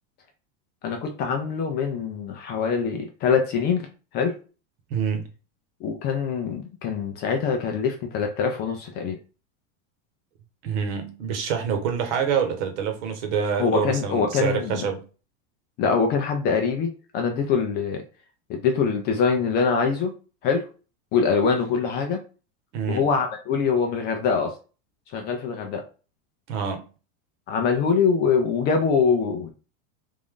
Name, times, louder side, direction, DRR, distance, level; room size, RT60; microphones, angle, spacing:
voice 1, 0.8-3.9 4.1-4.4 5.8-9.2 13.6-14.8 15.8-18.0 18.5-20.1 20.4-20.7 21.1-22.2 22.9-24.5 25.1-25.8 27.5-29.5, left 5 dB, 25° left, 0.4 m, -24 dB
voice 2, 4.9-5.3 10.6-15.0 22.7-23.1 26.5-26.9, right 7 dB, 60° right, 1.2 m, -26 dB
3.5 x 2.6 x 3.6 m
supercardioid pair, 150°, 39 cm